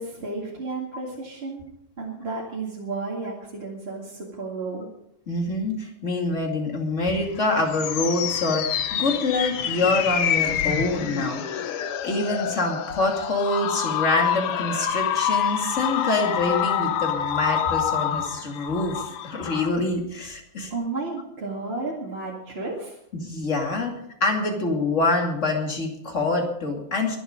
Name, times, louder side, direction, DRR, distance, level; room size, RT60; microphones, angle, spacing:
voice 1, 0.0-1.6 2.0-4.9 20.7-23.0, right 3 dB, 25° right, -3 dB, 1.8 m, -32 dB
voice 2, 5.3-11.7 12.0-20.7 23.1-23.9 24.2-27.2, left 2 dB, 25° left, 2 dB, 2.3 m, -25 dB
sound 1, 7.3-19.7, left 9 dB, 75° left, 1.3 m, -27 dB
22.5 x 8.0 x 5.2 m, 0.76 s
omnidirectional pair, 3.7 m